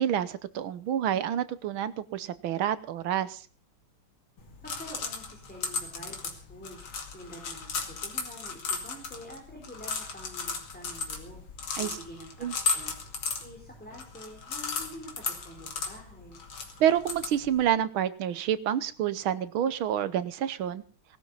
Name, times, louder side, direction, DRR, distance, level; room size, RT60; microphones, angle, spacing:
voice 1, 0.0-3.4 11.7-12.0 12.4-12.5 16.8-20.8, right 10 dB, 75° right, 15 dB, 1.7 m, -28 dB
sound 1, 4.4-17.7, left 4 dB, 70° left, 3.1 m, -36 dB
voice 2, 4.6-6.8 7.1-11.4 11.8-12.9 13.4-16.4, equal, 5° left, 1 dB, 4.1 m, -47 dB
19.0 x 12.0 x 5.5 m, 0.41 s
omnidirectional pair, 2.3 m